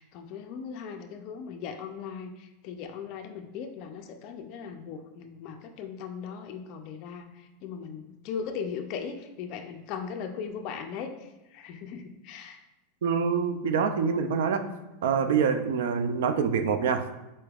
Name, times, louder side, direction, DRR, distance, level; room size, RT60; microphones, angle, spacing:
voice 1, 0.0-12.6 14.5-14.8 15.2-15.3, left 6 dB, 40° left, 5 dB, 0.3 m, -38 dB
voice 2, 13.0-14.7 15.0-17.2, right 6 dB, 85° right, 10 dB, 0.3 m, -26 dB
4.0 x 3.3 x 2.3 m, 1.0 s
supercardioid pair, 165°, 0 cm